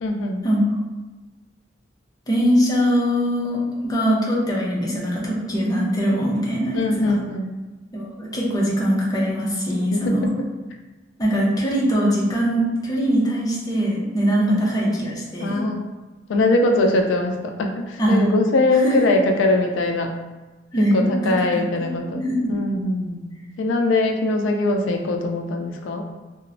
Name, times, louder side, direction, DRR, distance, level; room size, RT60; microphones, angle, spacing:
voice 1, 0.0-0.4 6.7-7.4 9.7-10.3 14.4-14.6 15.4-15.8 16.3-20.1 20.9-22.2 22.5-23.2 23.6-26.0, left 2 dB, 80° left, 4 dB, 0.3 m, -21 dB
voice 2, 2.3-7.2 7.9-10.3 11.2-15.6 18.0-18.6 18.8-19.1 20.7-21.9 22.1-22.6, equal, 20° left, -4 dB, 0.6 m, -22 dB
2.9 x 2.0 x 2.5 m, 1.2 s
head